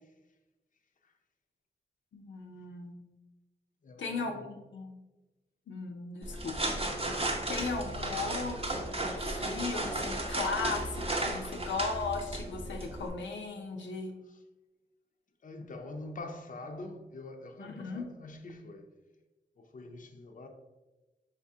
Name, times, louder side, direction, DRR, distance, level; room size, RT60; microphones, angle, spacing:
voice 1, 2.1-3.0 4.0-5.0 5.7-14.1 17.6-18.0, left 4 dB, 85° left, 0.6 m, -37 dB
voice 2, 3.8-4.5 14.3-14.4 15.4-18.9 19.6-20.5, left 2 dB, 45° left, 0.5 m, -45 dB
sound 1, 6.2-13.1, right 1 dB, 30° right, 0.7 m, -34 dB
5.5 x 3.5 x 2.7 m
wide cardioid pair, 85°, 19 cm